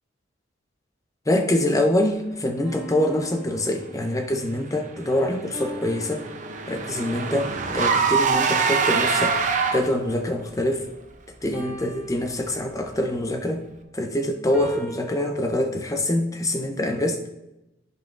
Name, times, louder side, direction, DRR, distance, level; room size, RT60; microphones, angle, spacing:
voice 1, 1.3-6.2 6.7-9.4 9.7-10.8 11.4-13.6 13.9-17.2, left 1 dB, 20° left, 4 dB, 0.7 m, -25 dB
sound 1, 2.6-4.4 5.5-7.2 8.5-10.2 11.5-13.0 14.5-15.3, equal, 10° right, 1.7 m, -40 dB
Car / Engine, 5.1-10.1, right 5 dB, 40° right, 0.7 m, -24 dB
10.5 x 5.4 x 2.5 m, 0.92 s
head